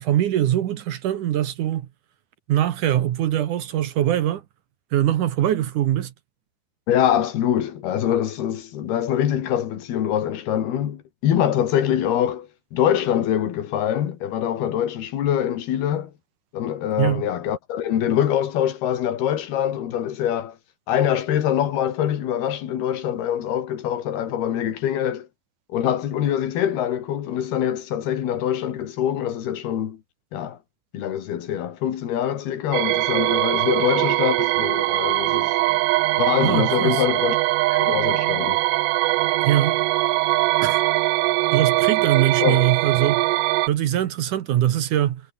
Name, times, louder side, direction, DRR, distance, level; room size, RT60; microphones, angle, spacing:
voice 1, 0.0-1.9 2.5-4.4 4.9-6.1 17.0-17.2 36.4-37.0 39.4-39.8 40.6-40.8 41.5-43.3 43.7-45.2, right 12 dB, 65° right, 2.4 m, -22 dB
voice 2, 6.9-16.1 16.5-20.6 20.9-25.3 25.7-30.0 30.3-30.6 30.9-35.5 36.2-37.4 37.7-38.6 42.4-42.6, left 10 dB, 85° left, 4.2 m, -24 dB
sound 1, 32.7-43.7, right 19 dB, 85° right, 1.9 m, -21 dB
omnidirectional pair, 4.4 m